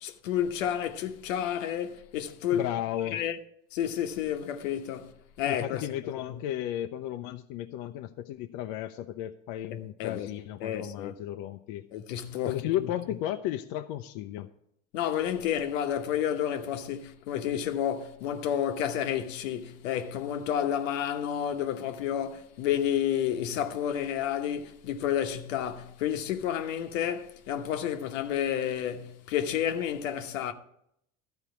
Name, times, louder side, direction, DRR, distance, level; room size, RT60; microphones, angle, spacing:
voice 1, 0.0-2.7 3.1-3.4 3.7-5.1 5.4-5.8 6.3-6.4 9.7-10.3 10.6-11.1 11.9-12.9 14.9-30.5, left 10 dB, 75° left, 1.1 m, -30 dB
voice 2, 2.5-3.2 5.5-11.8 12.5-14.5, left 12 dB, 60° left, 0.7 m, -34 dB
13.0 x 4.5 x 8.1 m
hypercardioid pair, 80°, 38 cm